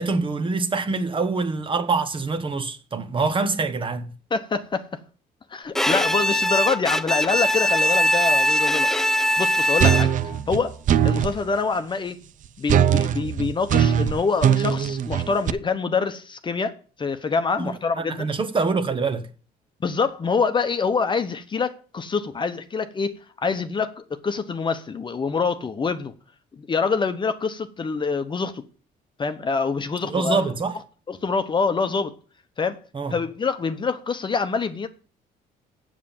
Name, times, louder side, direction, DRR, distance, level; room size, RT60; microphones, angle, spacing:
voice 1, 0.0-4.1 17.6-19.3 30.0-30.8 32.9-33.1, right 4 dB, 30° right, 1.1 m, -25 dB
voice 2, 4.3-5.0 5.5-8.9 9.4-10.1 10.5-10.8 11.0-12.2 12.6-18.3 19.8-26.1 26.6-28.6 29.2-30.5 31.1-32.1 32.6-32.8 33.1-34.9, left 4 dB, 30° left, 1.0 m, -25 dB
Bowed string instrument, 5.7-10.3, equal, 5° left, 0.5 m, -21 dB
sound 1, 9.8-11.4 12.7-15.5, right 9 dB, 50° right, 0.5 m, -20 dB
7.6 x 7.3 x 7.2 m
cardioid pair, 110°, 17 cm